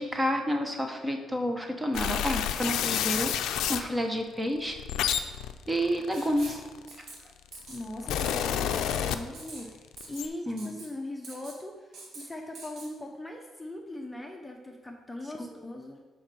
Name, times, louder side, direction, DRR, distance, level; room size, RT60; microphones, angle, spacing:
voice 1, 0.0-4.8 5.7-6.6 7.0-7.1 10.5-10.8, equal, 15° right, 4 dB, 1.0 m, -30 dB
sound 1, 1.9-3.9 4.6-7.0 7.7-9.7 9.9-10.3, left 9 dB, 85° left, 0.4 m, -29 dB
Writing, 6.1-6.6 6.9-7.2 7.5-7.8 8.1-8.4 8.7-9.0 9.3-9.6 10.0-10.2 10.6-10.9 11.2-11.6 11.9-12.2 12.6-12.9, right 3 dB, 65° right, 1.7 m, -45 dB
voice 2, 7.7-16.0, left 1 dB, 10° left, 2 dB, 0.8 m, -40 dB
7.1 x 4.6 x 5.4 m, 1.3 s
cardioid pair, 90°, 0 cm